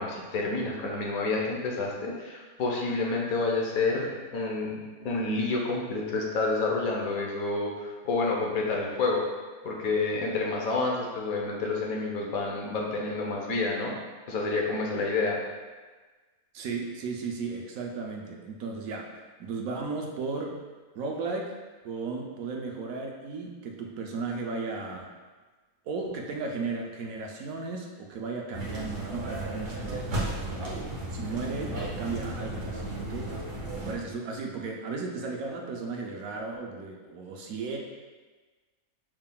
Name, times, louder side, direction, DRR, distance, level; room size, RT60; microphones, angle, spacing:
voice 1, 0.0-9.3 9.6-13.9 14.3-15.4, left 3 dB, 70° left, -2 dB, 1.2 m, -29 dB
voice 2, 16.5-19.1 19.4-20.6 20.9-21.5 21.8-25.1 25.9-33.3 33.8-37.8, right 4 dB, 75° right, 0 dB, 1.0 m, -35 dB
sound 1, 28.5-33.9, right 1 dB, 55° right, 1.3 m, -34 dB
5.5 x 3.6 x 2.2 m, 1.3 s
omnidirectional pair, 1.6 m